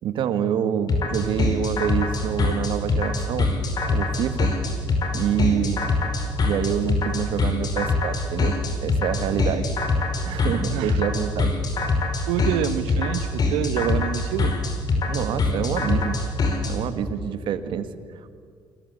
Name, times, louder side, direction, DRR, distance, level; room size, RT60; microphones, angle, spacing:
voice 1, 0.0-3.5 3.9-4.5 5.1-5.8 6.5-8.5 8.8-9.7 10.2-11.5 15.1-16.2 16.7-17.9, right 8 dB, 65° right, 10 dB, 2.1 m, -26 dB
sound 1, 0.9-16.7, left 3 dB, 45° left, 5.5 m, -23 dB
voice 2, 10.7-11.0 12.3-14.5, right 10 dB, 80° right, 13 dB, 1.3 m, -27 dB
29.0 x 21.5 x 8.5 m, 2.1 s
supercardioid pair, 75°, 9 cm